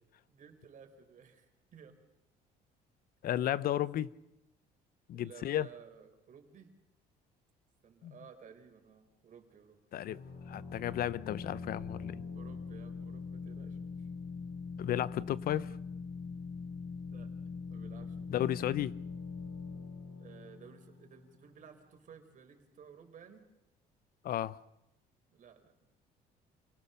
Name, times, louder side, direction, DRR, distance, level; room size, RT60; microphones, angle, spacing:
voice 1, 0.3-1.5 1.7-1.9 3.7-3.9 5.1-6.7 7.8-9.8 12.3-14.1 17.1-17.3 17.7-18.3 18.6-18.7 20.2-23.5 25.3-25.7, right 7 dB, 50° right, 4.3 m, -55 dB
voice 2, 3.2-4.1 5.1-5.7 8.0-8.1 9.9-10.2 10.5-12.2 14.8-15.7 18.3-18.9 24.2-24.6, left 12 dB, 60° left, 0.8 m, -33 dB
sound 1, 10.1-21.6, left 5 dB, 75° left, 5.8 m, -43 dB
28.5 x 18.0 x 6.8 m
cardioid pair, 110°, 17 cm